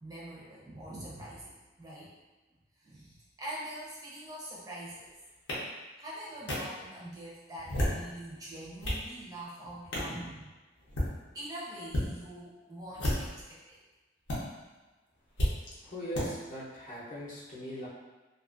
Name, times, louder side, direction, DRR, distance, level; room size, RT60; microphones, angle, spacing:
voice 1, 0.0-2.1 2.8-5.1 6.0-10.5 11.3-13.8, right 1 dB, 20° right, -6 dB, 0.5 m, -44 dB
sound 1, 5.5-5.6 6.5-6.6 7.5-8.0 8.6-9.0 9.9-10.1 10.8-11.1 11.9-12.1 12.9-13.4 14.3-14.4 15.4-15.5 16.1-16.3, left 1 dB, 85° left, 0.8 m, -31 dB
voice 2, 15.8-17.9, equal, 45° left, -7 dB, 0.7 m, -40 dB
2.5 x 2.4 x 2.4 m, 1.2 s
head